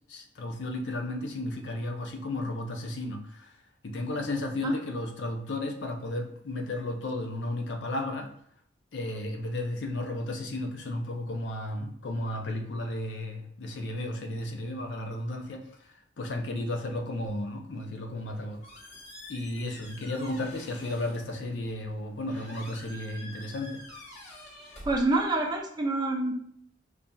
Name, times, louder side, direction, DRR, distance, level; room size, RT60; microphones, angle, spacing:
voice 1, 0.1-3.6 3.8-8.3 8.9-18.6 19.3-23.8, left 1 dB, 90° left, 4 dB, 0.5 m, -34 dB
Squeak, 18.1-25.6, left 1 dB, 40° left, 1.1 m, -48 dB
voice 2, 24.9-26.3, right 2 dB, 25° right, 1 dB, 0.5 m, -27 dB
5.3 x 2.4 x 2.2 m, 0.68 s
head